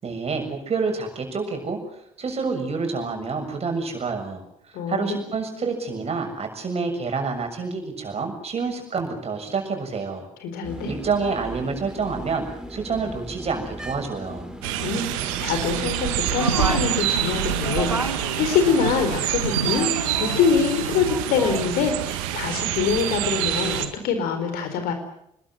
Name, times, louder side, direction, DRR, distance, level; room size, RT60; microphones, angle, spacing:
voice 1, 0.0-1.8 2.2-4.4 4.9-10.3 10.8-14.5, right 4 dB, 35° right, 4 dB, 6.9 m, -28 dB
voice 2, 4.7-5.2 10.4-10.9 14.8-19.9 20.2-24.9, left 6 dB, 60° left, 7 dB, 4.3 m, -24 dB
sound 1, 10.6-18.0, equal, 5° right, 3.8 m, -38 dB
sound 2, 14.6-23.9, right 12 dB, 65° right, 1.9 m, -27 dB
sound 3, 16.3-21.6, right 2 dB, 90° right, 1.2 m, -30 dB
25.5 x 21.5 x 7.8 m, 0.75 s
figure-of-eight pair, 50°, 17 cm